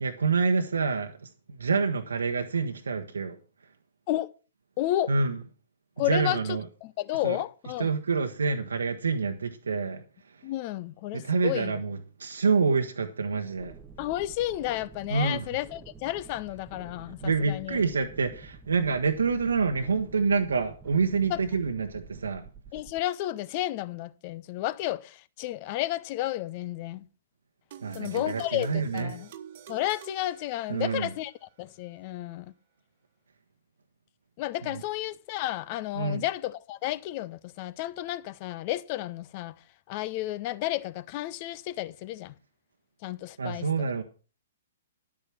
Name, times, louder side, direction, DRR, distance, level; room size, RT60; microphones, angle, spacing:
voice 1, 0.0-3.4 5.1-5.4 6.0-6.6 7.2-7.4 7.8-10.4 11.1-13.7 15.1-15.5 17.2-22.4 27.8-29.1 30.7-31.1 34.6-34.8 35.9-36.2 43.4-44.0, right 4 dB, 70° right, 1.1 m, -27 dB
voice 2, 4.8-5.1 6.0-7.9 10.4-11.7 14.0-17.8 21.3-21.4 22.7-27.1 27.9-29.3 29.7-31.3 31.6-32.5 34.4-39.5 39.9-42.3 43.0-43.7, left 15 dB, 35° left, 0.7 m, -32 dB
sound 1, 13.5-23.0, right 4 dB, 10° right, 0.9 m, -49 dB
sound 2, 27.7-31.2, right 10 dB, 50° right, 1.3 m, -47 dB
11.0 x 8.6 x 6.0 m
figure-of-eight pair, 115°, 0 cm